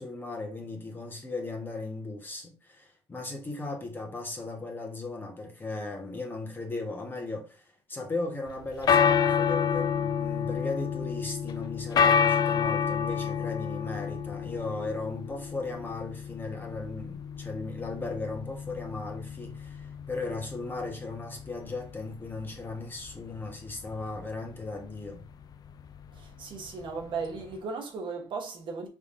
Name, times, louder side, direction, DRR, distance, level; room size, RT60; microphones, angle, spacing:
voice 1, 0.0-25.2, left 3 dB, 20° left, 1.2 m, -37 dB
sound 1, 8.5-27.6, left 7 dB, 40° left, 0.4 m, -29 dB
voice 2, 26.1-28.9, right 4 dB, 55° right, 1.1 m, -36 dB
5.1 x 3.4 x 2.6 m
cardioid pair, 125°, 10 cm